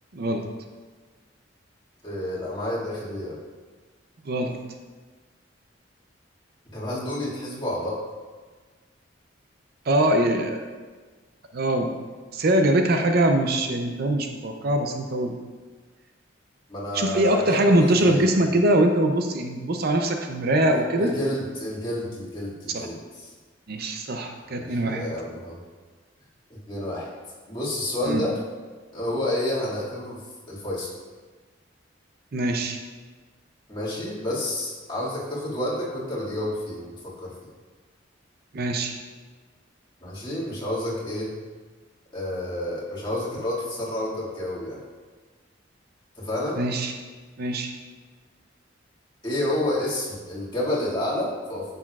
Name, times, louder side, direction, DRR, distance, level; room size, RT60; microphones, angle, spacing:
voice 1, 0.1-0.4 4.2-4.6 9.9-10.6 11.5-11.9 12.3-15.4 16.9-21.1 22.7-22.9 23.7-25.0 28.1-28.2 32.3-32.8 38.5-39.0 46.6-46.9 47.4-47.7, right 1 dB, 55° right, 5 dB, 0.6 m, -22 dB
voice 2, 2.0-3.4 6.7-8.0 16.7-18.3 21.0-23.3 24.6-25.6 26.5-27.1 27.5-28.4 28.9-30.2 30.5-30.9 33.7-37.3 40.0-41.3 42.1-44.8 46.2-46.6 49.2-51.6, left 1 dB, 25° left, -8 dB, 2.1 m, -29 dB
9.7 x 6.8 x 2.4 m, 1.4 s
head